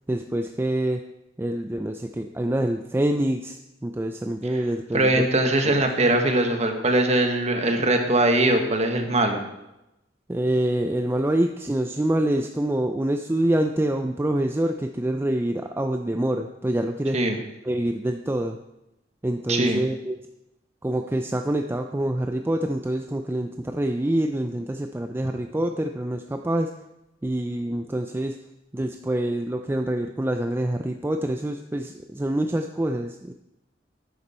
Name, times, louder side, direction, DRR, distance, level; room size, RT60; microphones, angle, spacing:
voice 1, 0.1-1.0 1.4-5.2 5.6-5.8 10.3-17.2 17.6-18.6 19.2-20.2 20.8-26.7 27.2-28.4 28.7-33.3, right 1 dB, 10° right, 5 dB, 0.4 m, -26 dB
voice 2, 4.9-9.4 17.1-17.4 19.5-19.8, right 2 dB, 35° right, 4 dB, 1.4 m, -21 dB
11.0 x 9.5 x 4.3 m, 0.92 s
head